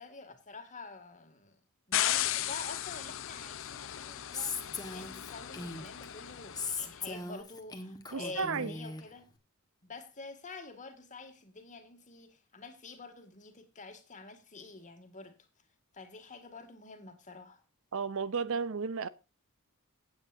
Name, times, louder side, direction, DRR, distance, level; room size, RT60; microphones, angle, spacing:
voice 1, 0.0-1.6 1.9-9.2 9.8-15.3 15.9-17.6, left 3 dB, 35° left, 2.2 m, -47 dB
sound 1, 1.9-7.0, left 12 dB, 60° left, 0.7 m, -36 dB
Female speech woman speaking, 4.3-6.1 6.6-9.0, left 4 dB, 20° left, 1.4 m, -39 dB
voice 2, 8.1-8.7 17.9-19.1, right 5 dB, 65° right, 0.7 m, -33 dB
16.0 x 8.6 x 2.6 m
head